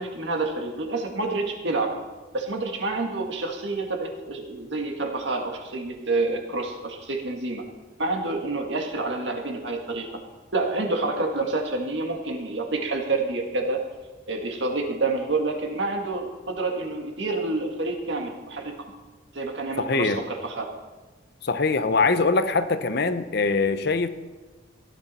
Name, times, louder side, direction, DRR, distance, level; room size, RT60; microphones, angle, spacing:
voice 1, 0.0-1.9 2.3-7.6 8.0-10.1 10.5-13.8 14.3-18.9 19.3-20.7, right 3 dB, 65° right, 2 dB, 1.8 m, -28 dB
voice 2, 19.8-20.2 21.4-24.1, left 3 dB, 55° left, 11 dB, 0.8 m, -23 dB
15.5 x 10.5 x 4.3 m, 1.2 s
head